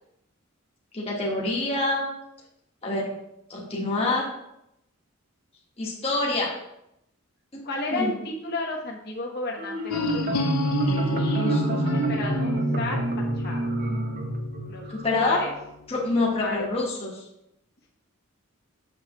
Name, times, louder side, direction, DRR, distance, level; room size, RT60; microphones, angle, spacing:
voice 1, 0.9-2.1 2.8-3.1 3.5-4.3 5.8-6.5 7.5-7.6 7.9-8.1 11.3-11.8 14.9-15.4 15.9-17.2, left 2 dB, 25° left, -3 dB, 1.2 m, -26 dB
voice 2, 7.6-10.5 10.9-11.5 11.9-13.0 13.4-13.6 14.7-14.8 15.2-15.5 16.1-16.7, left 2 dB, 50° left, -2 dB, 1.0 m, -33 dB
Marimba xylophone, 9.6-15.1, right 1 dB, 40° right, 0.7 m, -27 dB
sound 1, 9.9-15.7, left 2 dB, 90° left, 0.6 m, -31 dB
7.0 x 6.3 x 2.9 m, 0.82 s
head